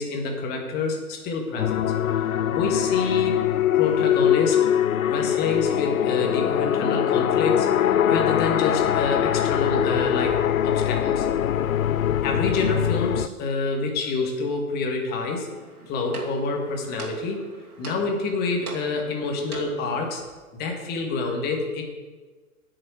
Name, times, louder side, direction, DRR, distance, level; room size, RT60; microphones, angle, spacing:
voice 1, 0.0-1.9 2.5-4.7 5.1-10.4 10.6-11.3 12.2-15.5 15.9-17.4 17.8-20.2 20.5-21.8, left 4 dB, 20° left, 2 dB, 1.8 m, -27 dB
sound 1, 1.6-13.3, left 10 dB, 65° left, 0.6 m, -22 dB
sound 2, 15.5-20.1, right 6 dB, 75° right, 3.0 m, -39 dB
9.3 x 6.7 x 8.0 m, 1.3 s
figure-of-eight pair, 120°, 44 cm